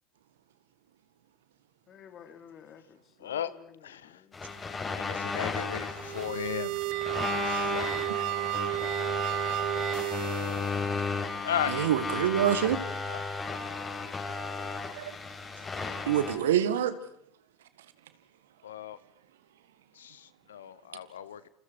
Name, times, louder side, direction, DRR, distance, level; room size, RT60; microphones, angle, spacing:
voice 1, 1.9-3.6 4.0-4.5, left 8 dB, 40° left, 8 dB, 3.2 m, -52 dB
voice 2, 3.2-3.5 3.8-4.2 4.9-6.8 7.4-7.9 11.4-11.7 13.1-13.2 18.6-19.0 20.0-21.5, left 10 dB, 80° left, 16 dB, 1.0 m, -35 dB
sound 1, 4.3-16.4, left 4 dB, 25° left, 5.6 m, -34 dB
sound 2, 6.0-10.9, right 17 dB, 60° right, 1.0 m, -32 dB
voice 3, 11.7-12.8 15.0-15.1 16.1-17.0, right 10 dB, 75° right, 12 dB, 1.8 m, -26 dB
28.5 x 28.5 x 4.8 m, 0.71 s
hypercardioid pair, 75°, 0 cm